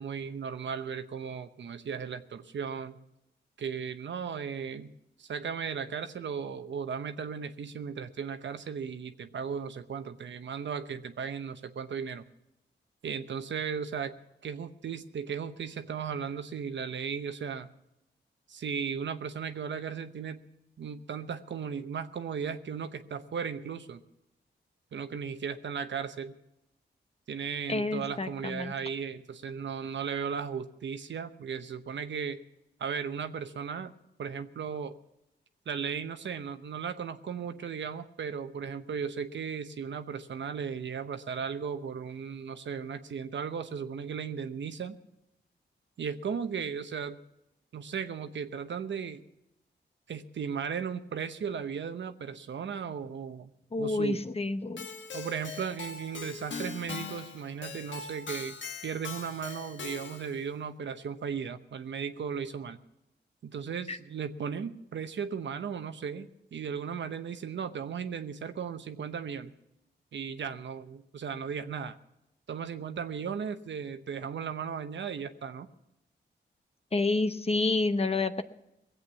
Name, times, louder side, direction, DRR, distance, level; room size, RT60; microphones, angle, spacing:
voice 1, 0.0-3.0 3.6-4.9 5.2-12.2 13.0-14.1 14.4-17.7 18.5-20.5 20.8-24.0 24.9-26.3 27.3-32.4 32.8-33.9 34.2-35.0 35.7-45.0 46.0-47.2 47.7-49.2 50.1-53.5 53.8-54.2 55.1-58.5 58.8-62.8 63.4-69.5 70.1-71.9 72.5-75.7, right 6 dB, 70° right, 9 dB, 0.9 m, -36 dB
voice 2, 27.7-28.7 53.7-54.9 63.9-64.0 76.9-78.4, left 3 dB, 30° left, 10 dB, 0.9 m, -29 dB
Keyboard (musical), 54.8-60.4, left 4 dB, 70° left, 1.2 m, -41 dB
19.5 x 8.1 x 7.0 m, 0.88 s
cardioid pair, 60°, 20 cm